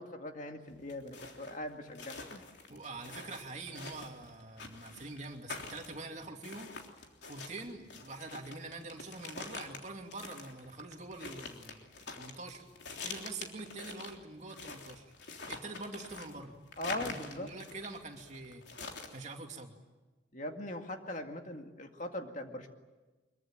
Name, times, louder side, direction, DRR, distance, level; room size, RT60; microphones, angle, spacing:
voice 1, 0.0-2.5 16.8-17.5 20.3-22.7, left 1 dB, 45° left, 4 dB, 2.2 m, -41 dB
sound 1, 0.7-19.2, left 4 dB, 70° left, 3.4 m, -46 dB
voice 2, 2.7-6.7 7.3-11.9 12.1-12.7 13.0-15.1 15.5-16.6 16.9-18.6 19.1-19.7, right 3 dB, 40° right, 3 dB, 2.7 m, -45 dB
24.5 x 23.0 x 9.0 m, 1.2 s
head